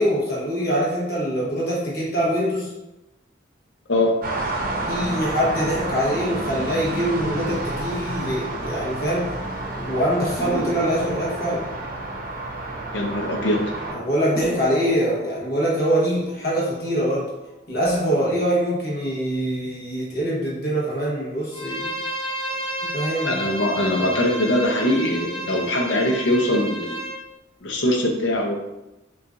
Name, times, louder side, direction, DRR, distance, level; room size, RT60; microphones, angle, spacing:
voice 1, 0.0-2.7 4.9-9.3 9.7-11.6 13.9-17.3 17.7-21.9 22.9-23.4, equal, 50° left, -5 dB, 1.1 m, -24 dB
sound 1, 4.2-13.9, right 2 dB, 45° right, 0.7 m, -30 dB
sound 2, 10.4-13.4 13.7-13.8 14.3-17.3 17.7-18.3, left 1 dB, 5° left, 0.5 m, -36 dB
voice 2, 12.9-13.6 23.3-27.0 27.6-28.6, left 1 dB, 75° left, 1 dB, 0.7 m, -22 dB
Bowed string instrument, 21.5-27.2, equal, 25° left, 0.9 m, -31 dB
6.7 x 2.4 x 2.5 m, 0.96 s
head